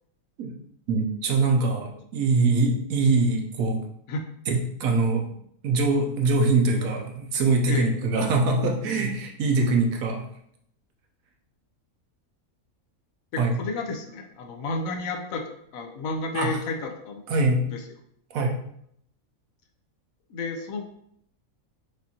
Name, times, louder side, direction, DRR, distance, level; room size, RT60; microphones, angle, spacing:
voice 1, 0.9-3.8 4.5-5.2 5.6-10.3 13.4-13.6 16.3-16.6 17.3-17.6 18.3-18.5, right 3 dB, 75° right, 2 dB, 1.1 m, -23 dB
voice 2, 13.3-17.2 17.6-17.8 20.3-20.8, left 3 dB, 75° left, 4 dB, 1.0 m, -32 dB
5.1 x 2.6 x 2.8 m, 0.70 s
omnidirectional pair, 1.5 m